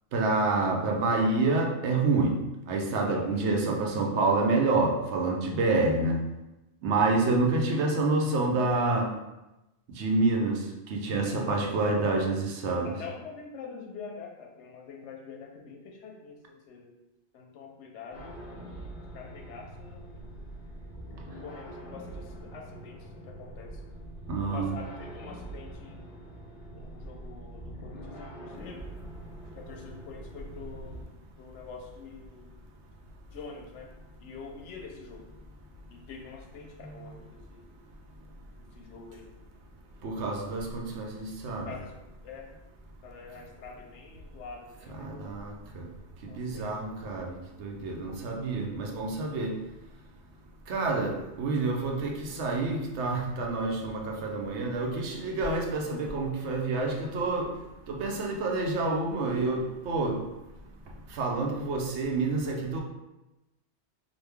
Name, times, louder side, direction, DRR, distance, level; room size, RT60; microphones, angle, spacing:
voice 1, 0.1-6.3 6.8-9.1 9.9-13.0 24.3-24.7 36.8-37.1 40.0-41.7 45.0-45.9 46.2-49.7 50.7-57.6 57.9-60.3 61.1-62.8, right 3 dB, 80° right, 1 dB, 0.9 m, -28 dB
voice 2, 3.0-3.4 11.2-11.7 12.8-16.9 17.3-18.4 19.1-20.1 21.4-23.8 24.4-26.0 26.7-28.9 29.6-31.1 31.4-32.5 33.3-33.9 34.2-35.2 35.9-37.6 38.6-39.3 41.7-41.9 42.2-42.5 43.0-45.3 46.3-46.7, left 5 dB, 85° left, 2 dB, 0.9 m, -45 dB
sound 1, 18.1-31.0, right 1 dB, 55° left, 0.7 m, -44 dB
3.0 x 2.3 x 3.3 m, 0.99 s
omnidirectional pair, 1.2 m